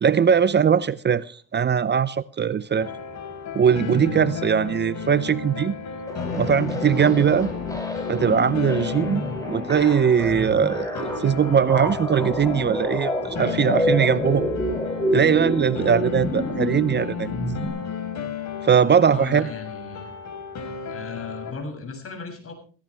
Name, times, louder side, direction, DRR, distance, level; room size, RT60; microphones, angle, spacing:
voice 1, 0.0-2.9 3.5-5.8 6.4-7.5 8.1-9.2 9.5-14.5 15.1-17.3 18.6-19.5, right 7 dB, 35° right, 0.6 m, -20 dB
sound 1, 2.8-21.5, left 7 dB, 65° left, 4.6 m, -33 dB
sound 2, 6.1-17.7, left 1 dB, 10° left, 6.5 m, -29 dB
voice 2, 19.1-20.1 20.9-22.5, left 4 dB, 50° left, 7.2 m, -36 dB
18.0 x 16.5 x 3.4 m
cardioid pair, 90°, 30 cm